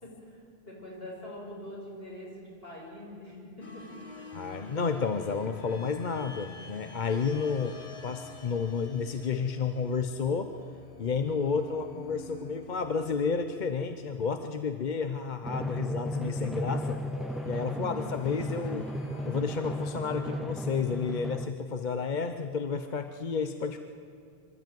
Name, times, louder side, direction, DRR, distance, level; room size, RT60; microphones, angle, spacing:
voice 1, 0.0-4.0 17.7-18.0, left 1 dB, 65° left, -4 dB, 6.3 m, -44 dB
sound 1, 3.6-14.9 16.2-20.4, left 2 dB, 90° left, 1.9 m, -48 dB
voice 2, 4.3-7.8 8.0-10.5 11.0-17.0 17.5-18.9 19.3-23.8, left 5 dB, 50° left, 7 dB, 0.9 m, -31 dB
Drum, 15.4-21.5, equal, ahead, 0.3 m, -35 dB
24.5 x 13.5 x 9.3 m, 2.4 s
omnidirectional pair, 1.1 m